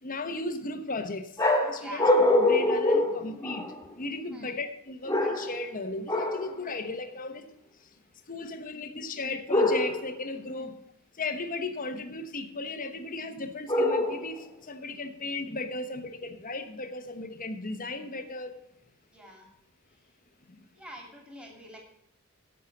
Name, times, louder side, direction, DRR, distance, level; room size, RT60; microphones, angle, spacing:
voice 1, 0.0-1.3 1.6-3.6 4.0-7.5 8.3-10.7 11.2-18.6 20.5-20.6, left 2 dB, 40° left, 8 dB, 1.1 m, -35 dB
sound 1, 1.4-3.9 5.1-5.7 6.1-6.5 9.5-10.2 13.7-14.4, left 2 dB, 15° left, 1.9 m, -25 dB
voice 2, 1.8-2.1 4.3-4.6 10.6-10.7 19.1-19.5 20.7-21.8, right 1 dB, 5° right, 0 dB, 2.8 m, -45 dB
11.0 x 7.5 x 7.2 m, 0.72 s
head